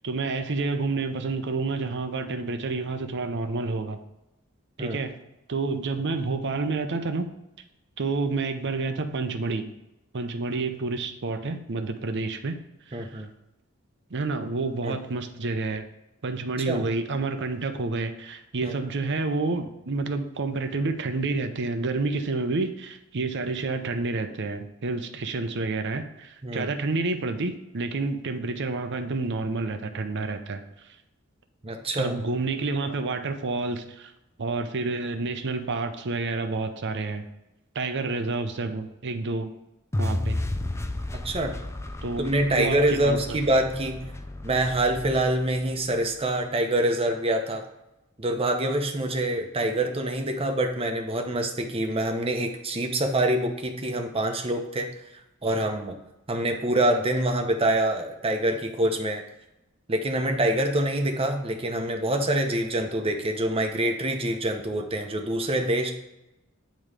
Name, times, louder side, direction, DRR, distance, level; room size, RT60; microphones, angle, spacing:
voice 1, 0.0-4.0 4.8-5.1 5.5-7.3 8.0-9.7 10.1-12.6 12.9-13.1 14.1-15.8 16.2-30.6 32.0-34.1 34.4-37.2 37.7-39.5 40.0-40.4 42.0-43.2, right 3 dB, 55° right, 7 dB, 0.6 m, -29 dB
voice 2, 12.9-13.3 14.8-15.0 16.7-16.8 18.6-18.7 26.4-26.7 31.6-32.1 41.1-41.6 42.2-44.1 44.4-47.6 48.2-54.9 55.4-56.0 56.3-59.2 59.9-65.9, right 1 dB, 25° right, 4 dB, 0.8 m, -25 dB
sound 1, 39.9-46.1, left 1 dB, 15° left, 0.4 m, -33 dB
9.1 x 3.1 x 4.9 m, 0.94 s
head